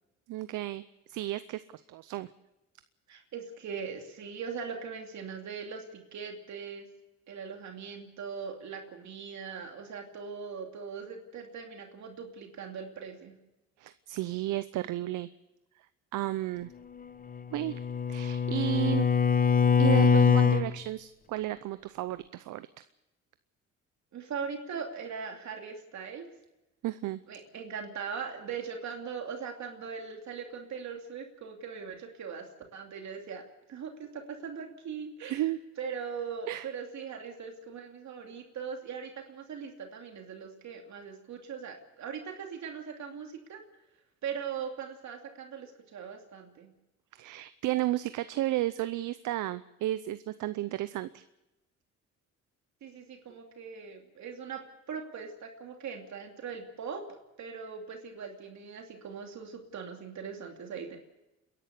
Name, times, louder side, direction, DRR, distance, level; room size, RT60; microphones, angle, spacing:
voice 1, 0.3-0.8 1.1-2.3 13.8-15.3 16.1-16.7 17.5-17.8 18.1-19.1 19.8-22.7 26.8-27.2 35.2-35.6 36.5-36.7 47.1-51.2, right 15 dB, 80° right, 13 dB, 0.7 m, -33 dB
voice 2, 3.1-6.9 7.3-13.4 24.1-26.3 27.3-33.4 33.7-35.5 35.8-43.6 44.2-46.7 52.8-54.6 54.9-57.0 57.4-61.0, right 6 dB, 65° right, 3 dB, 2.8 m, -40 dB
Bowed string instrument, 17.3-20.7, left 6 dB, 30° left, 1.0 m, -23 dB
29.5 x 11.0 x 8.2 m, 0.96 s
cardioid pair, 90°, 30 cm